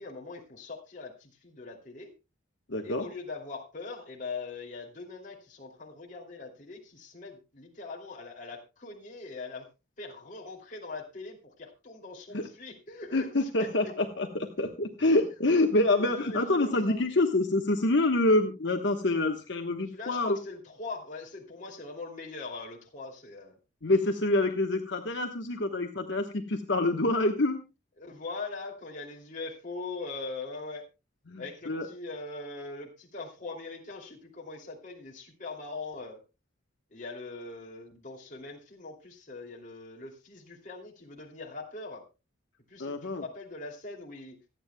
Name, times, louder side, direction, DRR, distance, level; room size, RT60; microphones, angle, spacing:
voice 1, 0.0-2.1 2.8-9.7 10.0-13.9 16.2-16.4 16.6-17.0 19.9-23.6 28.0-30.8 31.4-36.2 36.9-42.0 42.7-44.4, left 3 dB, 40° left, -1 dB, 2.7 m, -41 dB
voice 2, 2.7-3.1 12.3-12.5 13.1-20.4 23.8-27.6 31.3-31.9 42.8-43.2, left 2 dB, 65° left, 4 dB, 1.2 m, -26 dB
26.0 x 9.3 x 2.2 m, 0.27 s
head